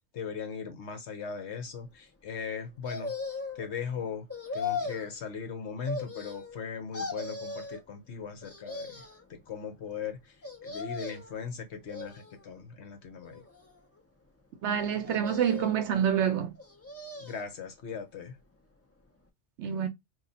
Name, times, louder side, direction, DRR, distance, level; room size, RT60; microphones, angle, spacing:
voice 1, 0.1-3.2 3.5-4.3 4.5-9.0 9.3-13.4 17.2-18.4, left 6 dB, 65° left, 1.1 m, -39 dB
sound 1, 2.8-3.7 4.3-5.1 5.8-6.6 6.9-7.8 8.4-9.2 10.4-11.4 11.9-12.6 13.2-14.0 15.0-15.8 16.6-17.5 17.9-18.0, left 4 dB, 25° left, 0.3 m, -38 dB
voice 2, 14.6-16.5 19.6-19.9, right 8 dB, 75° right, 0.9 m, -27 dB
2.9 x 2.4 x 3.8 m
omnidirectional pair, 1.3 m